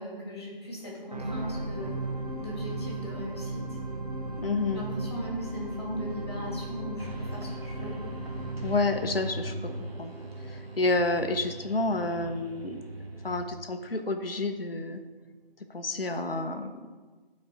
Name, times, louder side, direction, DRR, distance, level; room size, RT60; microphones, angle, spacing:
voice 1, 0.0-2.0 2.4-3.6 4.7-7.9, equal, 25° left, -4 dB, 1.9 m, -38 dB
sound 1, 1.1-13.5 14.1-14.2, right 2 dB, 45° right, 0.5 m, -38 dB
voice 2, 4.4-4.9 8.6-10.1 10.5-12.8 13.2-15.0 15.7-16.8, left 2 dB, 75° left, 6 dB, 0.7 m, -29 dB
sound 2, 7.0-13.4, right 1 dB, 85° right, 1.2 m, -41 dB
9.6 x 4.3 x 3.5 m, 1.3 s
figure-of-eight pair, 160°, 29 cm